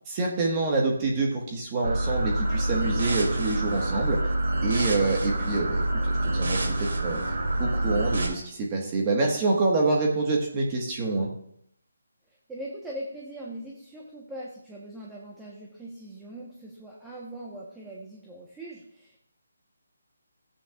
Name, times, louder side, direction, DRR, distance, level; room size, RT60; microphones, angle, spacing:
voice 1, 0.1-4.3 4.6-7.2 7.6-11.3, right 3 dB, 25° right, -1 dB, 1.6 m, -26 dB
sound 1, 1.8-8.3, right 1 dB, 70° right, 2.8 m, -27 dB
voice 2, 12.5-19.2, right 1 dB, 5° right, -4 dB, 1.2 m, -41 dB
15.0 x 8.7 x 2.5 m, 0.70 s
figure-of-eight pair, 160°, 0 cm